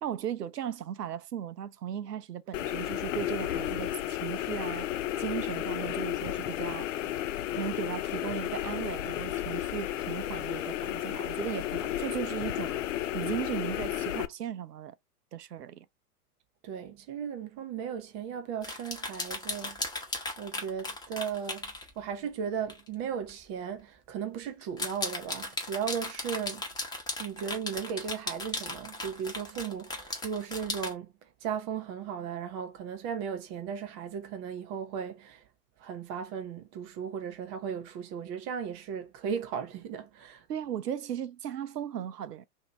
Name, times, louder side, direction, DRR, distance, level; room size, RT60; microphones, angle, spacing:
voice 1, 0.0-6.9 7.5-14.9 15.3-15.9 40.5-42.4, right 9 dB, 80° right, 0.6 m, -37 dB
sound 1, 2.5-14.3, left 13 dB, 55° left, 0.5 m, -33 dB
voice 2, 16.6-19.8 20.4-26.6 27.2-31.1 31.4-35.4 35.8-40.4, right 7 dB, 20° right, 0.4 m, -36 dB
sound 2, 18.6-21.9 22.7-22.9 23.3-23.4 24.6-30.9, left 2 dB, 10° left, 0.9 m, -36 dB
2.9 x 2.6 x 4.3 m
figure-of-eight pair, 110°, 47 cm